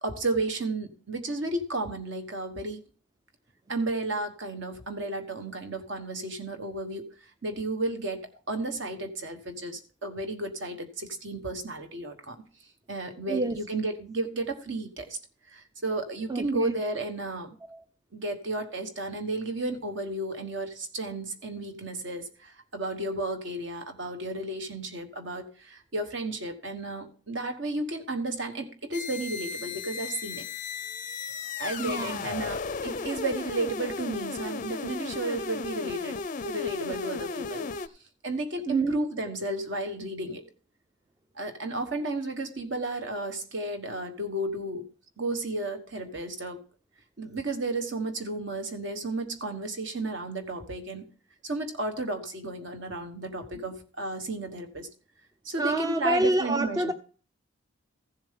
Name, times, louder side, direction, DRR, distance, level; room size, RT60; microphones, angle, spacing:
voice 1, 0.0-2.8 3.7-7.1 7.4-12.4 12.9-15.2 15.5-17.6 18.1-30.5 31.6-37.7 38.2-40.4 41.3-44.9 45.2-46.6 47.2-51.1 51.4-54.9 55.4-56.9, right 2 dB, 60° right, 1.3 m, -33 dB
voice 2, 13.3-13.6 16.3-16.7 17.6-17.8 31.8-32.2 38.7-39.0 55.6-56.9, right 2 dB, 20° right, 0.4 m, -27 dB
sound 1, 28.9-37.9, left 4 dB, 40° left, 0.4 m, -35 dB
15.0 x 7.2 x 3.7 m
head